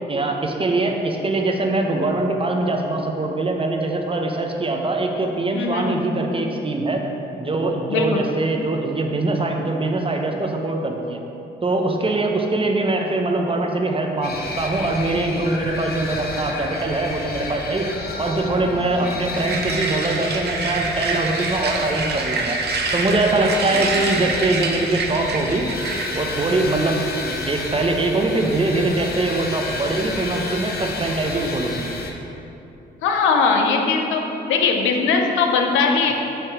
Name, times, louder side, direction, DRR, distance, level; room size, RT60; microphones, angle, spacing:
voice 1, 0.0-7.0 7.4-11.2 11.6-17.9 18.2-22.6 22.9-25.7 26.1-31.9, right 2 dB, 30° right, 2 dB, 0.9 m, -22 dB
voice 2, 5.5-6.0 7.9-8.3 18.8-18.9 23.7-24.0 33.0-34.2 34.5-36.1, left 4 dB, 90° left, 3 dB, 0.7 m, -20 dB
sound 1, 14.2-32.1, left 3 dB, 55° left, 0.9 m, -31 dB
sound 2, 19.3-26.5, right 4 dB, 60° right, 0.8 m, -27 dB
7.9 x 3.1 x 6.0 m, 3.0 s
supercardioid pair, 60°, 20 cm